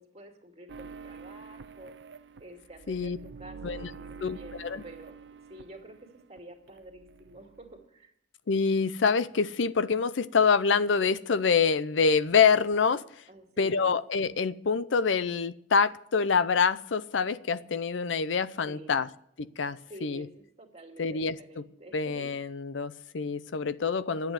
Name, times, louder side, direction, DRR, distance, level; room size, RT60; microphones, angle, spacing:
voice 1, 0.0-6.0 6.3-8.1 13.3-13.9 18.6-19.0 19.9-22.6, right 1 dB, 35° right, 2.5 m, -49 dB
sound 1, 0.7-6.4 6.7-7.8, right 5 dB, 65° right, 0.5 m, -47 dB
voice 2, 4.2-4.8 8.5-13.0 13.6-19.1 19.4-20.3 21.0-21.6 21.9-24.3, left 5 dB, 75° left, 0.6 m, -26 dB
11.5 x 8.3 x 9.3 m
head